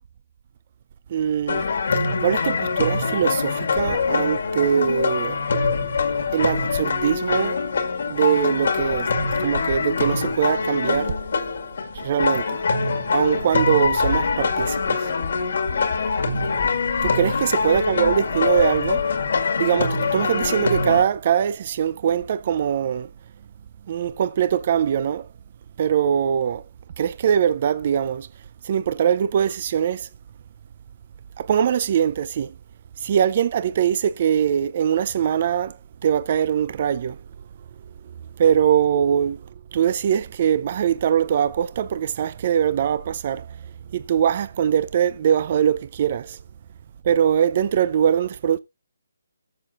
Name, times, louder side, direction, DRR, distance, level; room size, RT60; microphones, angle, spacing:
voice 1, 1.1-1.6 2.2-5.4 6.3-7.6 8.1-9.1 9.4-11.1 11.9-12.6 13.1-15.1 17.0-19.1 19.6-23.1 23.9-25.3 25.8-26.6 27.0-28.3 28.6-30.1 31.4-32.5 33.0-35.8 36.0-37.2 38.4-39.4 39.7-43.5 43.9-46.4 47.0-48.6, right 8 dB, 35° right, 0.5 m, -22 dB
sound 1, 1.5-21.0, left 4 dB, 60° left, 1.8 m, -24 dB
19.0 x 7.1 x 2.4 m
hypercardioid pair, 165°, 0 cm